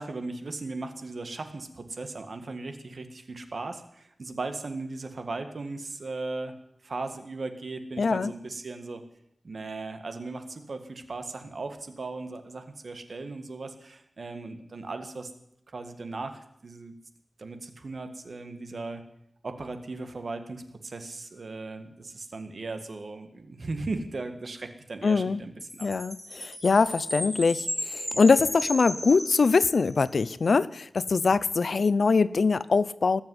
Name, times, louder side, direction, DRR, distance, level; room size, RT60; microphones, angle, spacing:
voice 1, 0.0-6.6 6.8-9.0 9.4-15.3 15.7-16.9 17.4-19.0 19.4-25.9, right 3 dB, 70° right, 7 dB, 1.8 m, -37 dB
voice 2, 8.0-8.3 25.0-25.4 25.8-33.2, left 4 dB, 85° left, 17 dB, 0.6 m, -23 dB
Chime, 25.6-30.1, left 1 dB, 10° left, 6.5 m, -35 dB
19.5 x 7.1 x 9.7 m, 0.73 s
wide cardioid pair, 85°, 0 cm